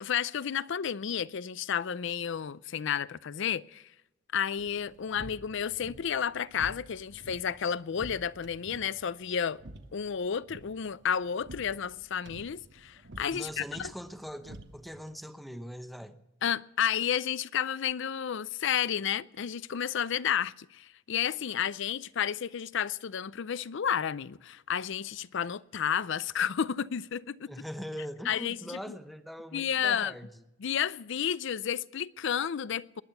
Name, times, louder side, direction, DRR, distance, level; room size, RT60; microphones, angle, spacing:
voice 1, 0.0-3.9 4.3-9.6 9.9-13.9 16.4-27.5 28.3-29.0 29.5-30.2 30.6-33.0, left 8 dB, 65° left, 0.5 m, -31 dB
sound 1, 4.6-15.1, right 1 dB, 60° right, 1.2 m, -50 dB
voice 2, 13.3-16.2 27.5-30.4, equal, ahead, 0.9 m, -41 dB
19.5 x 10.5 x 6.9 m
head